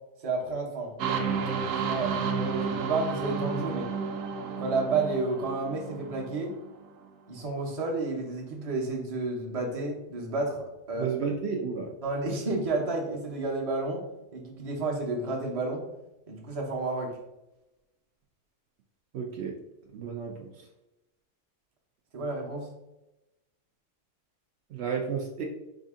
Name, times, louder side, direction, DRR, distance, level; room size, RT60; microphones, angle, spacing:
voice 1, 0.2-0.9 1.9-3.9 4.6-6.5 7.3-11.1 12.0-14.0 14.3-15.9 16.3-17.1 22.1-22.7, right 3 dB, 35° right, -1 dB, 0.6 m, -31 dB
sound 1, 1.0-6.7, right 5 dB, 65° right, 0.9 m, -31 dB
voice 2, 11.0-11.9 19.1-19.5 19.9-20.5 24.7-25.5, right 6 dB, 90° right, 0 dB, 0.5 m, -32 dB
4.9 x 2.6 x 3.6 m, 0.96 s
omnidirectional pair, 1.7 m